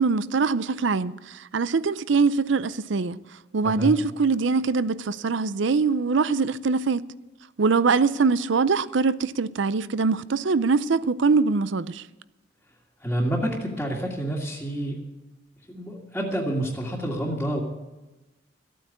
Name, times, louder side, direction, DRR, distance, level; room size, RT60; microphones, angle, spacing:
voice 1, 0.0-3.2 3.5-7.0 7.6-12.0, right 4 dB, 70° right, 0.5 m, -23 dB
voice 2, 3.6-4.0 13.0-15.0 15.7-17.6, right 1 dB, 5° left, 1.9 m, -28 dB
14.5 x 9.2 x 8.3 m
head